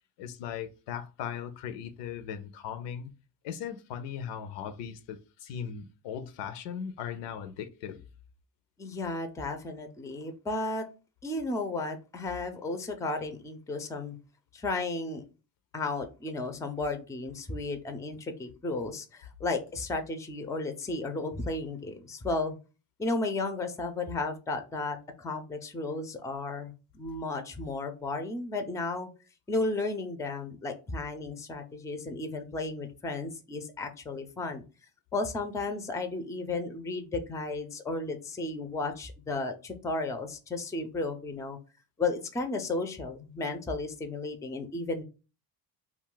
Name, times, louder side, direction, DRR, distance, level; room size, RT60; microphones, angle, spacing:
voice 1, 0.2-3.1 3.4-8.0, left 8 dB, 85° left, 0.6 m, -38 dB
voice 2, 8.8-10.8 11.2-14.2 14.5-15.2 15.7-22.6 23.0-29.1 29.5-34.6 35.1-41.6 42.0-45.0, left 3 dB, 10° left, 0.4 m, -34 dB
2.3 x 2.3 x 3.7 m
cardioid pair, 100°, 42 cm